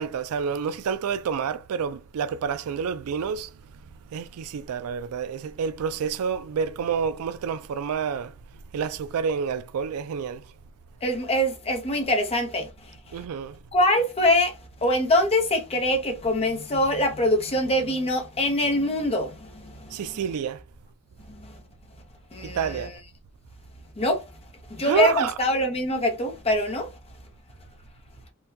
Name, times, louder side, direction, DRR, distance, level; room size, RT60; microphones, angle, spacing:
voice 1, 0.0-3.5 4.1-8.3 8.7-10.4 13.1-13.6 19.9-20.6 22.5-22.9 24.8-25.4, right 6 dB, 70° right, 0.3 m, -28 dB
voice 2, 11.0-12.7 13.7-20.0 21.4-21.5 22.3-22.9 24.0-24.2 24.7-26.9, left 1 dB, 25° left, 0.7 m, -24 dB
3.7 x 2.2 x 2.7 m
head